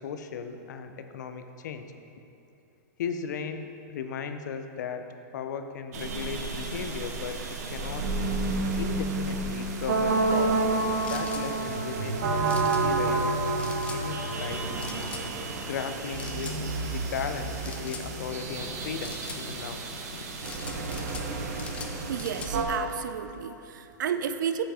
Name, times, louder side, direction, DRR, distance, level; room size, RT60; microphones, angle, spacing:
voice 1, 0.0-1.9 3.0-5.1 5.3-7.4 7.7-8.1 8.8-10.6 11.0-14.9 15.6-16.6 16.9-19.8 20.1-20.5, left 6 dB, 70° left, 8 dB, 0.6 m, -36 dB
sound 1, 5.9-22.6, right 3 dB, 60° right, 1.0 m, -30 dB
sound 2, 11.0-11.4 12.5-12.8 13.6-14.0 14.8-15.2 16.2-16.6 17.6-18.1 19.0-19.4 20.4-21.3 21.6-22.5, left 6 dB, 10° left, 0.4 m, -42 dB
voice 2, 22.1-24.6, right 8 dB, 90° right, 10 dB, 0.5 m, -32 dB
7.4 x 5.8 x 4.9 m, 2.7 s
supercardioid pair, 165°, 10 cm